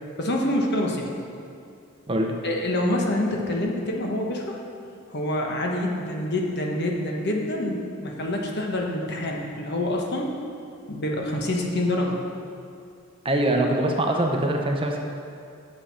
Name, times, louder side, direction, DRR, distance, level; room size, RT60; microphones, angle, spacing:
voice 1, 0.2-1.1 2.4-4.6 5.1-10.3 10.9-12.2, left 1 dB, 50° left, 0 dB, 1.2 m, -26 dB
voice 2, 13.2-15.0, right 1 dB, 25° right, 2 dB, 0.7 m, -23 dB
8.9 x 6.4 x 5.7 m, 2.4 s
head